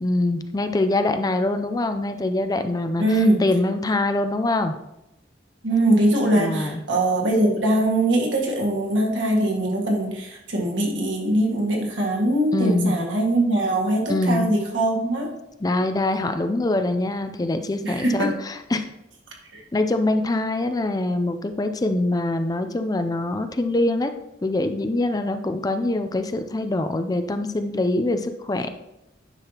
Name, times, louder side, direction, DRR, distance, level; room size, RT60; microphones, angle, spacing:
voice 1, 0.0-4.8 6.3-6.8 12.5-12.9 14.1-14.5 15.6-18.8 19.7-24.1 24.4-28.7, left 2 dB, 20° left, 8 dB, 0.4 m, -24 dB
voice 2, 3.0-3.4 5.6-15.3 17.8-18.4 19.5-19.6, right 1 dB, 90° right, -1 dB, 1.9 m, -22 dB
9.8 x 5.7 x 2.9 m, 0.90 s
head